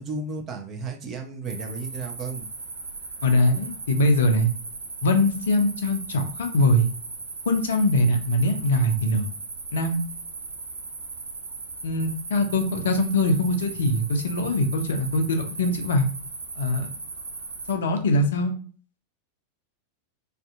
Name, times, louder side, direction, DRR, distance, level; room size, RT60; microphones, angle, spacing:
voice 1, 0.0-2.5, right 3 dB, 25° right, 2 dB, 0.6 m, -33 dB
sound 1, 1.4-17.7, right 4 dB, 75° right, 0.4 m, -38 dB
voice 2, 3.2-4.5 5.0-6.9 7.5-9.3 9.7-10.0 11.8-16.0 16.6-16.9 17.7-18.5, left 1 dB, 60° left, 5 dB, 0.5 m, -22 dB
2.5 x 2.4 x 2.4 m, 0.41 s
figure-of-eight pair, 90°, 0 cm